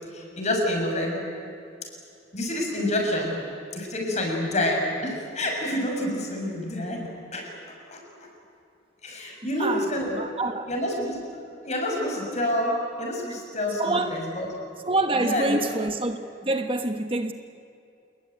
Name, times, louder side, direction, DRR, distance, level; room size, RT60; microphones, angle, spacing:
voice 1, 0.1-1.2 2.3-3.4 3.7-7.0 7.3-8.0 9.0-10.2 10.7-11.2 11.6-14.5 15.1-15.6, left 1 dB, 40° left, 1 dB, 7.0 m, -28 dB
voice 2, 9.6-10.6 13.8-14.3 14.9-17.3, right 2 dB, 30° right, 6 dB, 1.3 m, -27 dB
28.5 x 21.5 x 9.3 m, 2.6 s
head